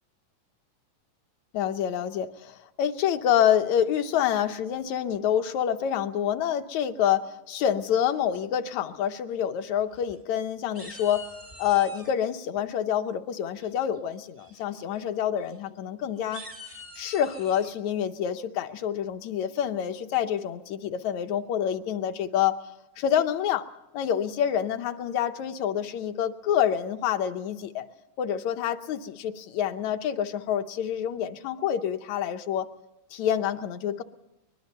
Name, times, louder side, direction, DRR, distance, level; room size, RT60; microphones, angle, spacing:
voice 1, 1.5-11.2 11.6-16.4 17.0-22.6 23.0-23.7 23.9-27.8 28.2-32.7 33.1-34.0, left 9 dB, 70° left, 9 dB, 2.0 m, -27 dB
Hawk Screech, 9.8-10.4 10.7-12.1 13.6-14.0 14.4-14.6 14.9-15.0 15.4-15.5 16.1-17.7, left 1 dB, 30° right, 0.6 m, -45 dB
23.5 x 20.5 x 5.5 m, 0.93 s
omnidirectional pair, 3.6 m